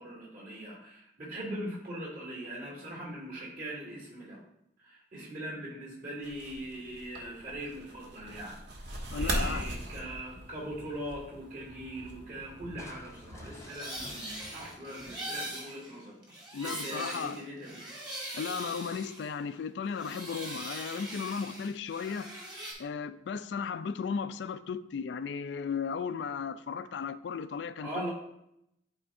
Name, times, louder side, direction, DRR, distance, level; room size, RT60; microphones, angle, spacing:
voice 1, 0.0-4.4 4.8-8.6 8.9-16.1 16.6-17.8 27.8-28.1, right 1 dB, 50° right, 2.8 m, -41 dB
sound 1, 6.2-13.6, right 1 dB, 70° right, 1.1 m, -39 dB
voice 2, 9.1-9.7 16.5-17.5 18.3-22.3 22.8-28.1, left 6 dB, 75° left, 0.3 m, -35 dB
Crushing, 12.8-16.2, left 2 dB, 15° left, 0.5 m, -53 dB
sound 2, 13.4-19.6 19.9-22.7, right 1 dB, 25° right, 1.7 m, -42 dB
11.0 x 4.4 x 2.6 m
head